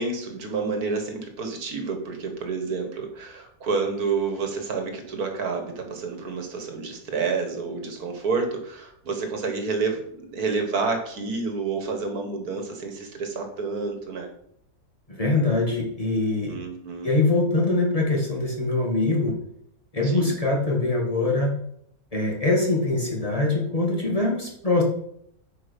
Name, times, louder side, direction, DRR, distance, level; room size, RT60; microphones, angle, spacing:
voice 1, 0.0-14.3 16.5-17.1 20.0-20.3, right 4 dB, 75° right, 4 dB, 1.9 m, -29 dB
voice 2, 15.1-16.5 17.0-19.3 19.9-21.5 22.1-24.8, left 2 dB, 25° left, -2 dB, 2.2 m, -23 dB
8.7 x 5.4 x 5.3 m, 0.70 s
omnidirectional pair, 1.6 m